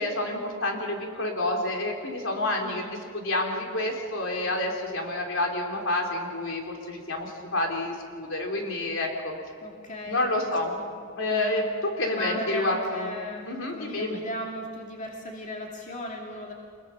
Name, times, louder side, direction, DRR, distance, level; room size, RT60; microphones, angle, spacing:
voice 1, 0.0-2.8 3.1-9.4 10.1-10.7 11.2-13.1 13.5-14.2, left 2 dB, 75° left, 1 dB, 3.6 m, -29 dB
voice 2, 2.6-3.0 9.6-10.9 11.3-11.6 12.1-16.5, left 1 dB, 40° left, -1 dB, 2.5 m, -37 dB
27.0 x 21.5 x 5.9 m, 2.2 s
head